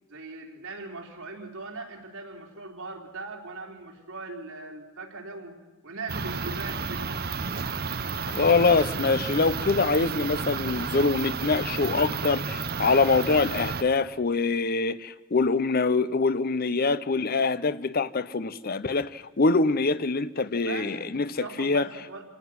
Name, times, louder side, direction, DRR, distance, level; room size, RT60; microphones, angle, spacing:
voice 1, 0.1-5.6 5.8-7.1 20.6-22.2, right 3 dB, 90° right, 3.4 m, -40 dB
sound 1, 6.1-13.8, right 5 dB, 50° right, 0.8 m, -32 dB
voice 2, 8.3-21.9, left 4 dB, 45° left, 0.7 m, -24 dB
26.5 x 19.0 x 6.1 m
head